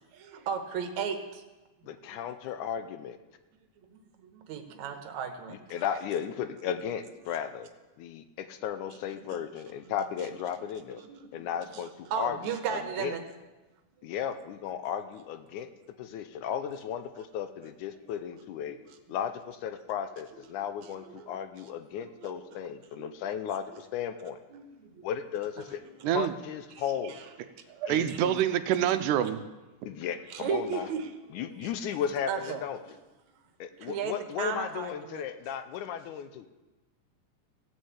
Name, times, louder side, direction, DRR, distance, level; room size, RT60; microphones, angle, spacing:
voice 1, 0.0-1.4 1.9-2.2 3.9-5.7 9.4-9.5 9.9-10.3 11.0-13.2 14.0-14.1 16.1-16.5 20.8-21.4 22.0-22.5 22.9-23.1 23.7-23.8 24.5-25.1 25.6-25.7 26.0-26.1 26.8-27.3 28.1-28.2 30.3-31.7 32.3-32.6 33.7-35.3, right 7 dB, 70° right, 6 dB, 2.3 m, -37 dB
voice 2, 1.8-3.2 5.7-7.7 8.0-11.0 11.3-12.4 12.7-13.2 14.0-15.7 16.0-18.8 19.1-24.4 25.0-27.2 27.9-28.4 29.9-30.9 31.3-32.8 33.6-36.5, left 8 dB, 80° left, 10 dB, 2.0 m, -35 dB
voice 3, 27.8-29.4, right 11 dB, 85° right, 10 dB, 2.1 m, -26 dB
16.0 x 6.4 x 8.3 m, 1.1 s
omnidirectional pair, 3.7 m